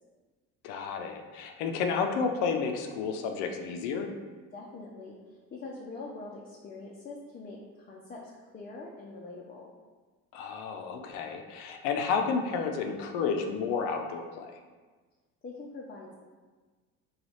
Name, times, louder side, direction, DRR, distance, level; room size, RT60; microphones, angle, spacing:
voice 1, 0.6-4.1 10.3-14.5, left 5 dB, 65° left, 4 dB, 0.6 m, -31 dB
voice 2, 4.5-9.7 15.4-16.1, left 3 dB, 20° left, -3 dB, 0.5 m, -44 dB
3.2 x 2.3 x 4.0 m, 1.4 s
hypercardioid pair, 65°, 45 cm